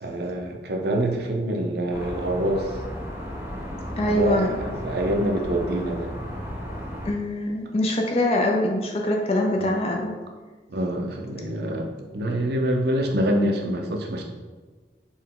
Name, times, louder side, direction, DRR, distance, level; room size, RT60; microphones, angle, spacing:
voice 1, 0.0-2.7 4.1-6.1 9.6-9.8 10.7-14.2, right 1 dB, 65° right, 2 dB, 0.5 m, -26 dB
sound 1, 1.9-7.1, equal, 15° right, 0.7 m, -34 dB
voice 2, 4.0-4.6 7.0-10.1, left 1 dB, 35° left, 1 dB, 0.4 m, -23 dB
4.4 x 2.1 x 3.6 m, 1.3 s
head